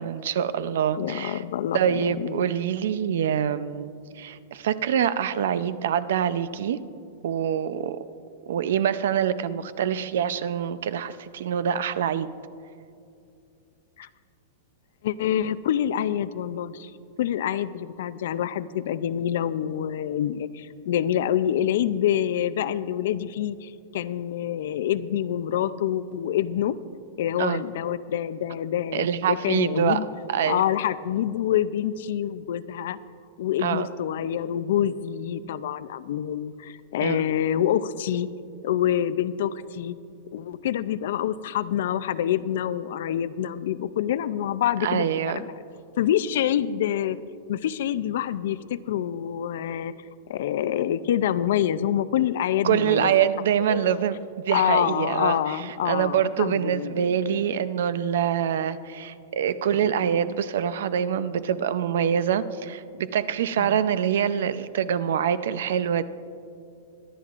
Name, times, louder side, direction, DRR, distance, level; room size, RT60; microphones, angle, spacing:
voice 1, 0.0-1.4 1.7-6.8 7.2-8.0 8.5-12.3 27.4-27.6 28.9-30.0 30.3-30.6 33.6-33.9 37.0-37.2 44.8-45.4 52.6-55.6 55.8-66.0, right 9 dB, 70° right, 14 dB, 0.5 m, -25 dB
voice 2, 1.0-2.5 14.0-14.1 15.0-16.9 17.2-26.8 27.2-30.1 30.5-33.0 33.4-38.3 38.6-40.0 40.3-45.5 46.0-47.2 47.5-49.9 50.3-53.1 53.7-54.0 54.5-57.4 63.6-63.8, left 10 dB, 60° left, 15 dB, 0.4 m, -26 dB
24.5 x 10.5 x 2.5 m, 2.5 s
supercardioid pair, 170°, 0 cm